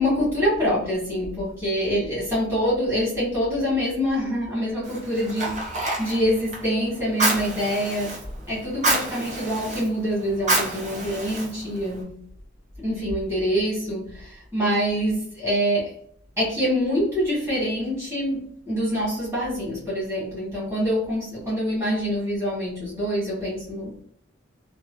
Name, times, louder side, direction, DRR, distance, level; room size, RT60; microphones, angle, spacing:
voice 1, 0.0-8.2 8.5-12.3 12.8-15.9 16.4-24.0, equal, 15° right, -9 dB, 1.5 m, -25 dB
Fire, 4.8-12.0, right 2 dB, 40° right, 0.7 m, -29 dB
3.0 x 2.2 x 2.5 m, 0.66 s
head